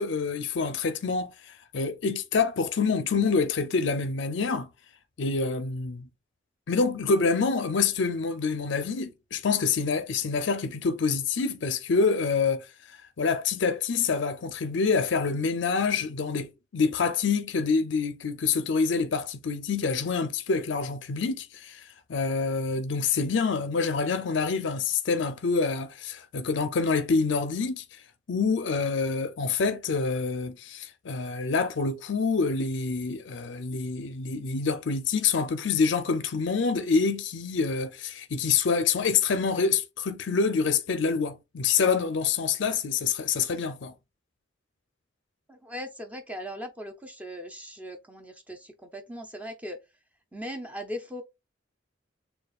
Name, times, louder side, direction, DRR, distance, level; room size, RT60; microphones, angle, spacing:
voice 1, 0.0-4.7 5.2-6.1 6.7-12.7 13.2-21.8 22.1-27.8 28.3-43.9, left 5 dB, 65° left, 0.5 m, -26 dB
voice 2, 45.5-49.8 50.3-51.2, equal, 10° right, 0.6 m, -39 dB
6.6 x 2.3 x 2.3 m
head